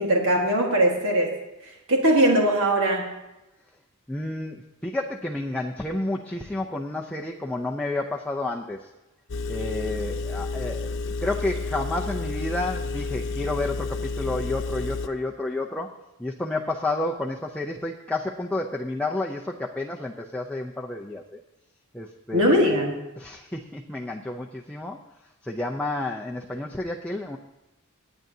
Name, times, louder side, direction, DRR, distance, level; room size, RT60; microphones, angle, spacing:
voice 1, 0.0-1.3 1.9-3.1 22.3-22.9, right 1 dB, 65° right, 0 dB, 1.6 m, -20 dB
voice 2, 4.1-8.9 9.5-21.4 21.9-22.8 23.2-25.0 25.4-27.4, left 2 dB, 5° left, -1 dB, 0.6 m, -30 dB
Engine, 9.3-15.1, left 3 dB, 60° left, 0.6 m, -30 dB
26.5 x 8.9 x 2.7 m, 0.95 s
head